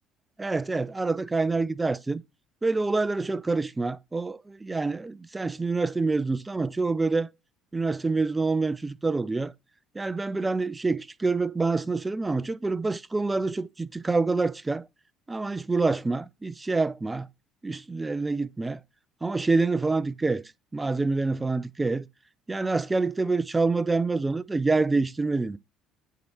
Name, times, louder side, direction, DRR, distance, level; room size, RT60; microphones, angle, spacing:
voice 1, 0.4-2.2 2.6-7.3 7.7-9.5 9.9-14.8 15.3-17.3 17.6-18.8 19.2-20.4 20.7-22.1 22.5-25.6, right 3 dB, 20° right, 0.4 m, -26 dB
9.2 x 3.1 x 4.2 m
hypercardioid pair, 60°, 0 cm